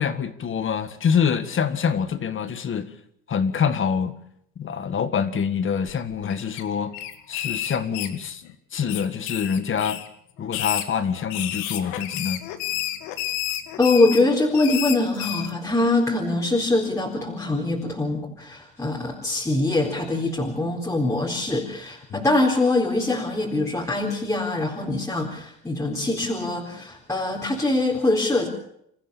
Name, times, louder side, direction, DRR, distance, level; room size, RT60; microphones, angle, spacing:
voice 1, 0.0-2.9 3.3-4.1 4.6-7.0 7.3-8.4 8.7-10.0 10.4-12.4 22.1-22.3, left 7 dB, 35° left, 1.8 m, -25 dB
sound 1, 5.9-6.6 6.9-8.5 8.9-10.1 10.4-15.5, left 12 dB, 85° left, 2.3 m, -31 dB
voice 2, 13.8-28.5, left 2 dB, 10° left, 4.1 m, -23 dB
28.0 x 14.5 x 7.1 m
cardioid pair, 125°, 38 cm